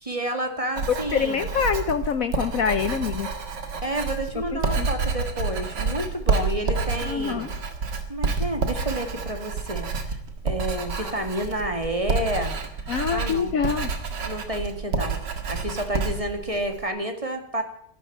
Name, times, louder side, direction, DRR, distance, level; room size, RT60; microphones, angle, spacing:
voice 1, 0.0-1.4 3.8-7.5 8.1-10.2 10.4-12.5 13.1-13.6 14.2-15.2 15.5-17.6, right 1 dB, 20° right, 6 dB, 2.2 m, -30 dB
Writing, 0.8-16.8, right 4 dB, 85° right, 2.5 m, -29 dB
voice 2, 0.9-3.3 4.5-4.9 7.0-7.5 10.9-11.1 12.9-13.9, left 6 dB, 60° left, 11 dB, 1.1 m, -25 dB
13.5 x 12.0 x 8.7 m, 0.66 s
omnidirectional pair, 1.8 m